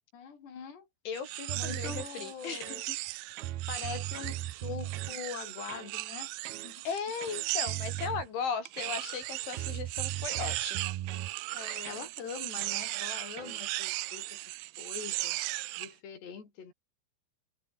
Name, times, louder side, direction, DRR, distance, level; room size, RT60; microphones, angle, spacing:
voice 1, 0.1-0.9 1.5-2.8 3.7-6.3 6.6-6.9 11.5-14.4 14.8-15.4 15.8-16.7, left 6 dB, 65° left, 7.4 m, -43 dB
voice 2, 1.1-3.0 6.9-10.9, left 6 dB, 85° left, 7.7 m, -37 dB
sound 1, 1.2-8.1 8.7-15.9, right 20 dB, 85° right, 3.0 m, -37 dB
sound 2, 1.5-2.1 2.6-3.1 3.4-5.2 5.7-5.9 6.5-6.7 7.2-8.3 8.8-9.2 9.5-11.3 11.9-12.1 12.6-12.8 13.4-13.6, right 13 dB, 65° right, 2.8 m, -38 dB
open air
omnidirectional pair, 5.3 m